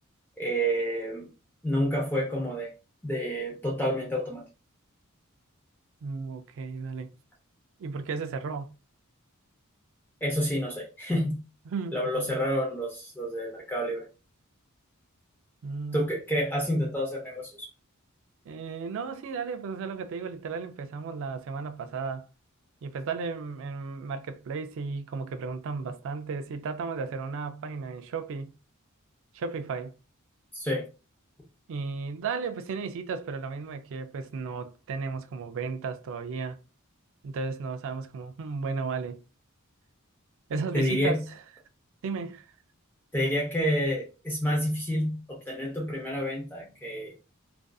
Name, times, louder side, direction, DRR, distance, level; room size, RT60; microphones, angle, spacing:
voice 1, 0.4-1.3 1.6-2.7 3.0-4.4 10.2-11.4 11.9-14.1 15.9-17.7 30.5-30.8 40.7-41.2 43.1-47.2, equal, 10° left, 0.6 m, -29 dB
voice 2, 6.0-7.1 7.8-8.7 11.7-12.4 15.6-16.0 18.5-22.3 22.8-28.5 29.3-29.9 31.7-36.6 37.2-39.2 40.5-41.4 42.0-42.5, right 4 dB, 60° right, 0.3 m, -34 dB
2.4 x 2.4 x 2.3 m
head